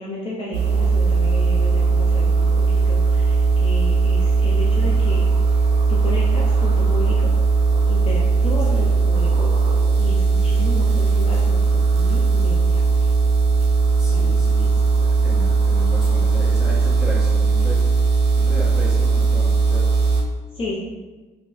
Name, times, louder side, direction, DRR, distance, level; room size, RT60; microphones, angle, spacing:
voice 1, 0.0-5.2 5.9-7.3 7.9-9.5 10.0-13.1 14.1-14.3 20.5-20.8, left 2 dB, 35° left, -5 dB, 0.5 m, -32 dB
sound 1, 0.5-20.2, right 4 dB, 80° right, 0.6 m, -18 dB
voice 2, 8.6-8.9 10.4-10.6 14.0-14.7 15.0-19.9, equal, 5° right, -7 dB, 1.0 m, -35 dB
3.7 x 2.1 x 2.5 m, 1.2 s
cardioid pair, 110°, 17 cm